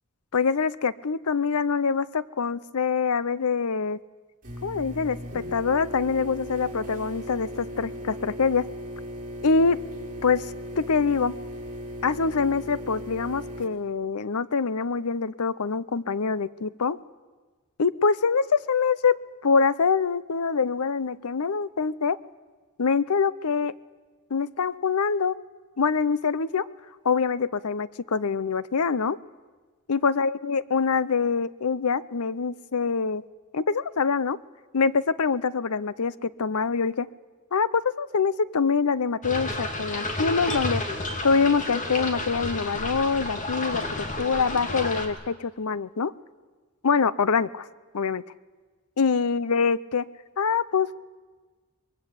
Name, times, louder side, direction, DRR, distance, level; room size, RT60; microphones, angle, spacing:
voice 1, 0.3-4.0 4.6-8.7 9.4-9.8 10.2-10.5 10.8-11.3 12.0-17.0 17.8-19.2 19.4-22.2 22.8-23.7 24.3-25.4 25.8-26.7 27.0-29.2 29.9-33.2 33.5-34.4 34.7-37.1 37.5-40.8 41.2-43.8 44.2-46.1 46.8-47.7 47.9-48.2 49.0-50.1 50.4-50.9, left 5 dB, 80° left, 18 dB, 0.7 m, -24 dB
sound 1, 4.4-13.6, equal, 40° right, 4.7 m, -37 dB
sound 2, 39.2-45.1, left 2 dB, 35° left, 2.6 m, -31 dB
24.0 x 21.5 x 8.3 m, 1.4 s
head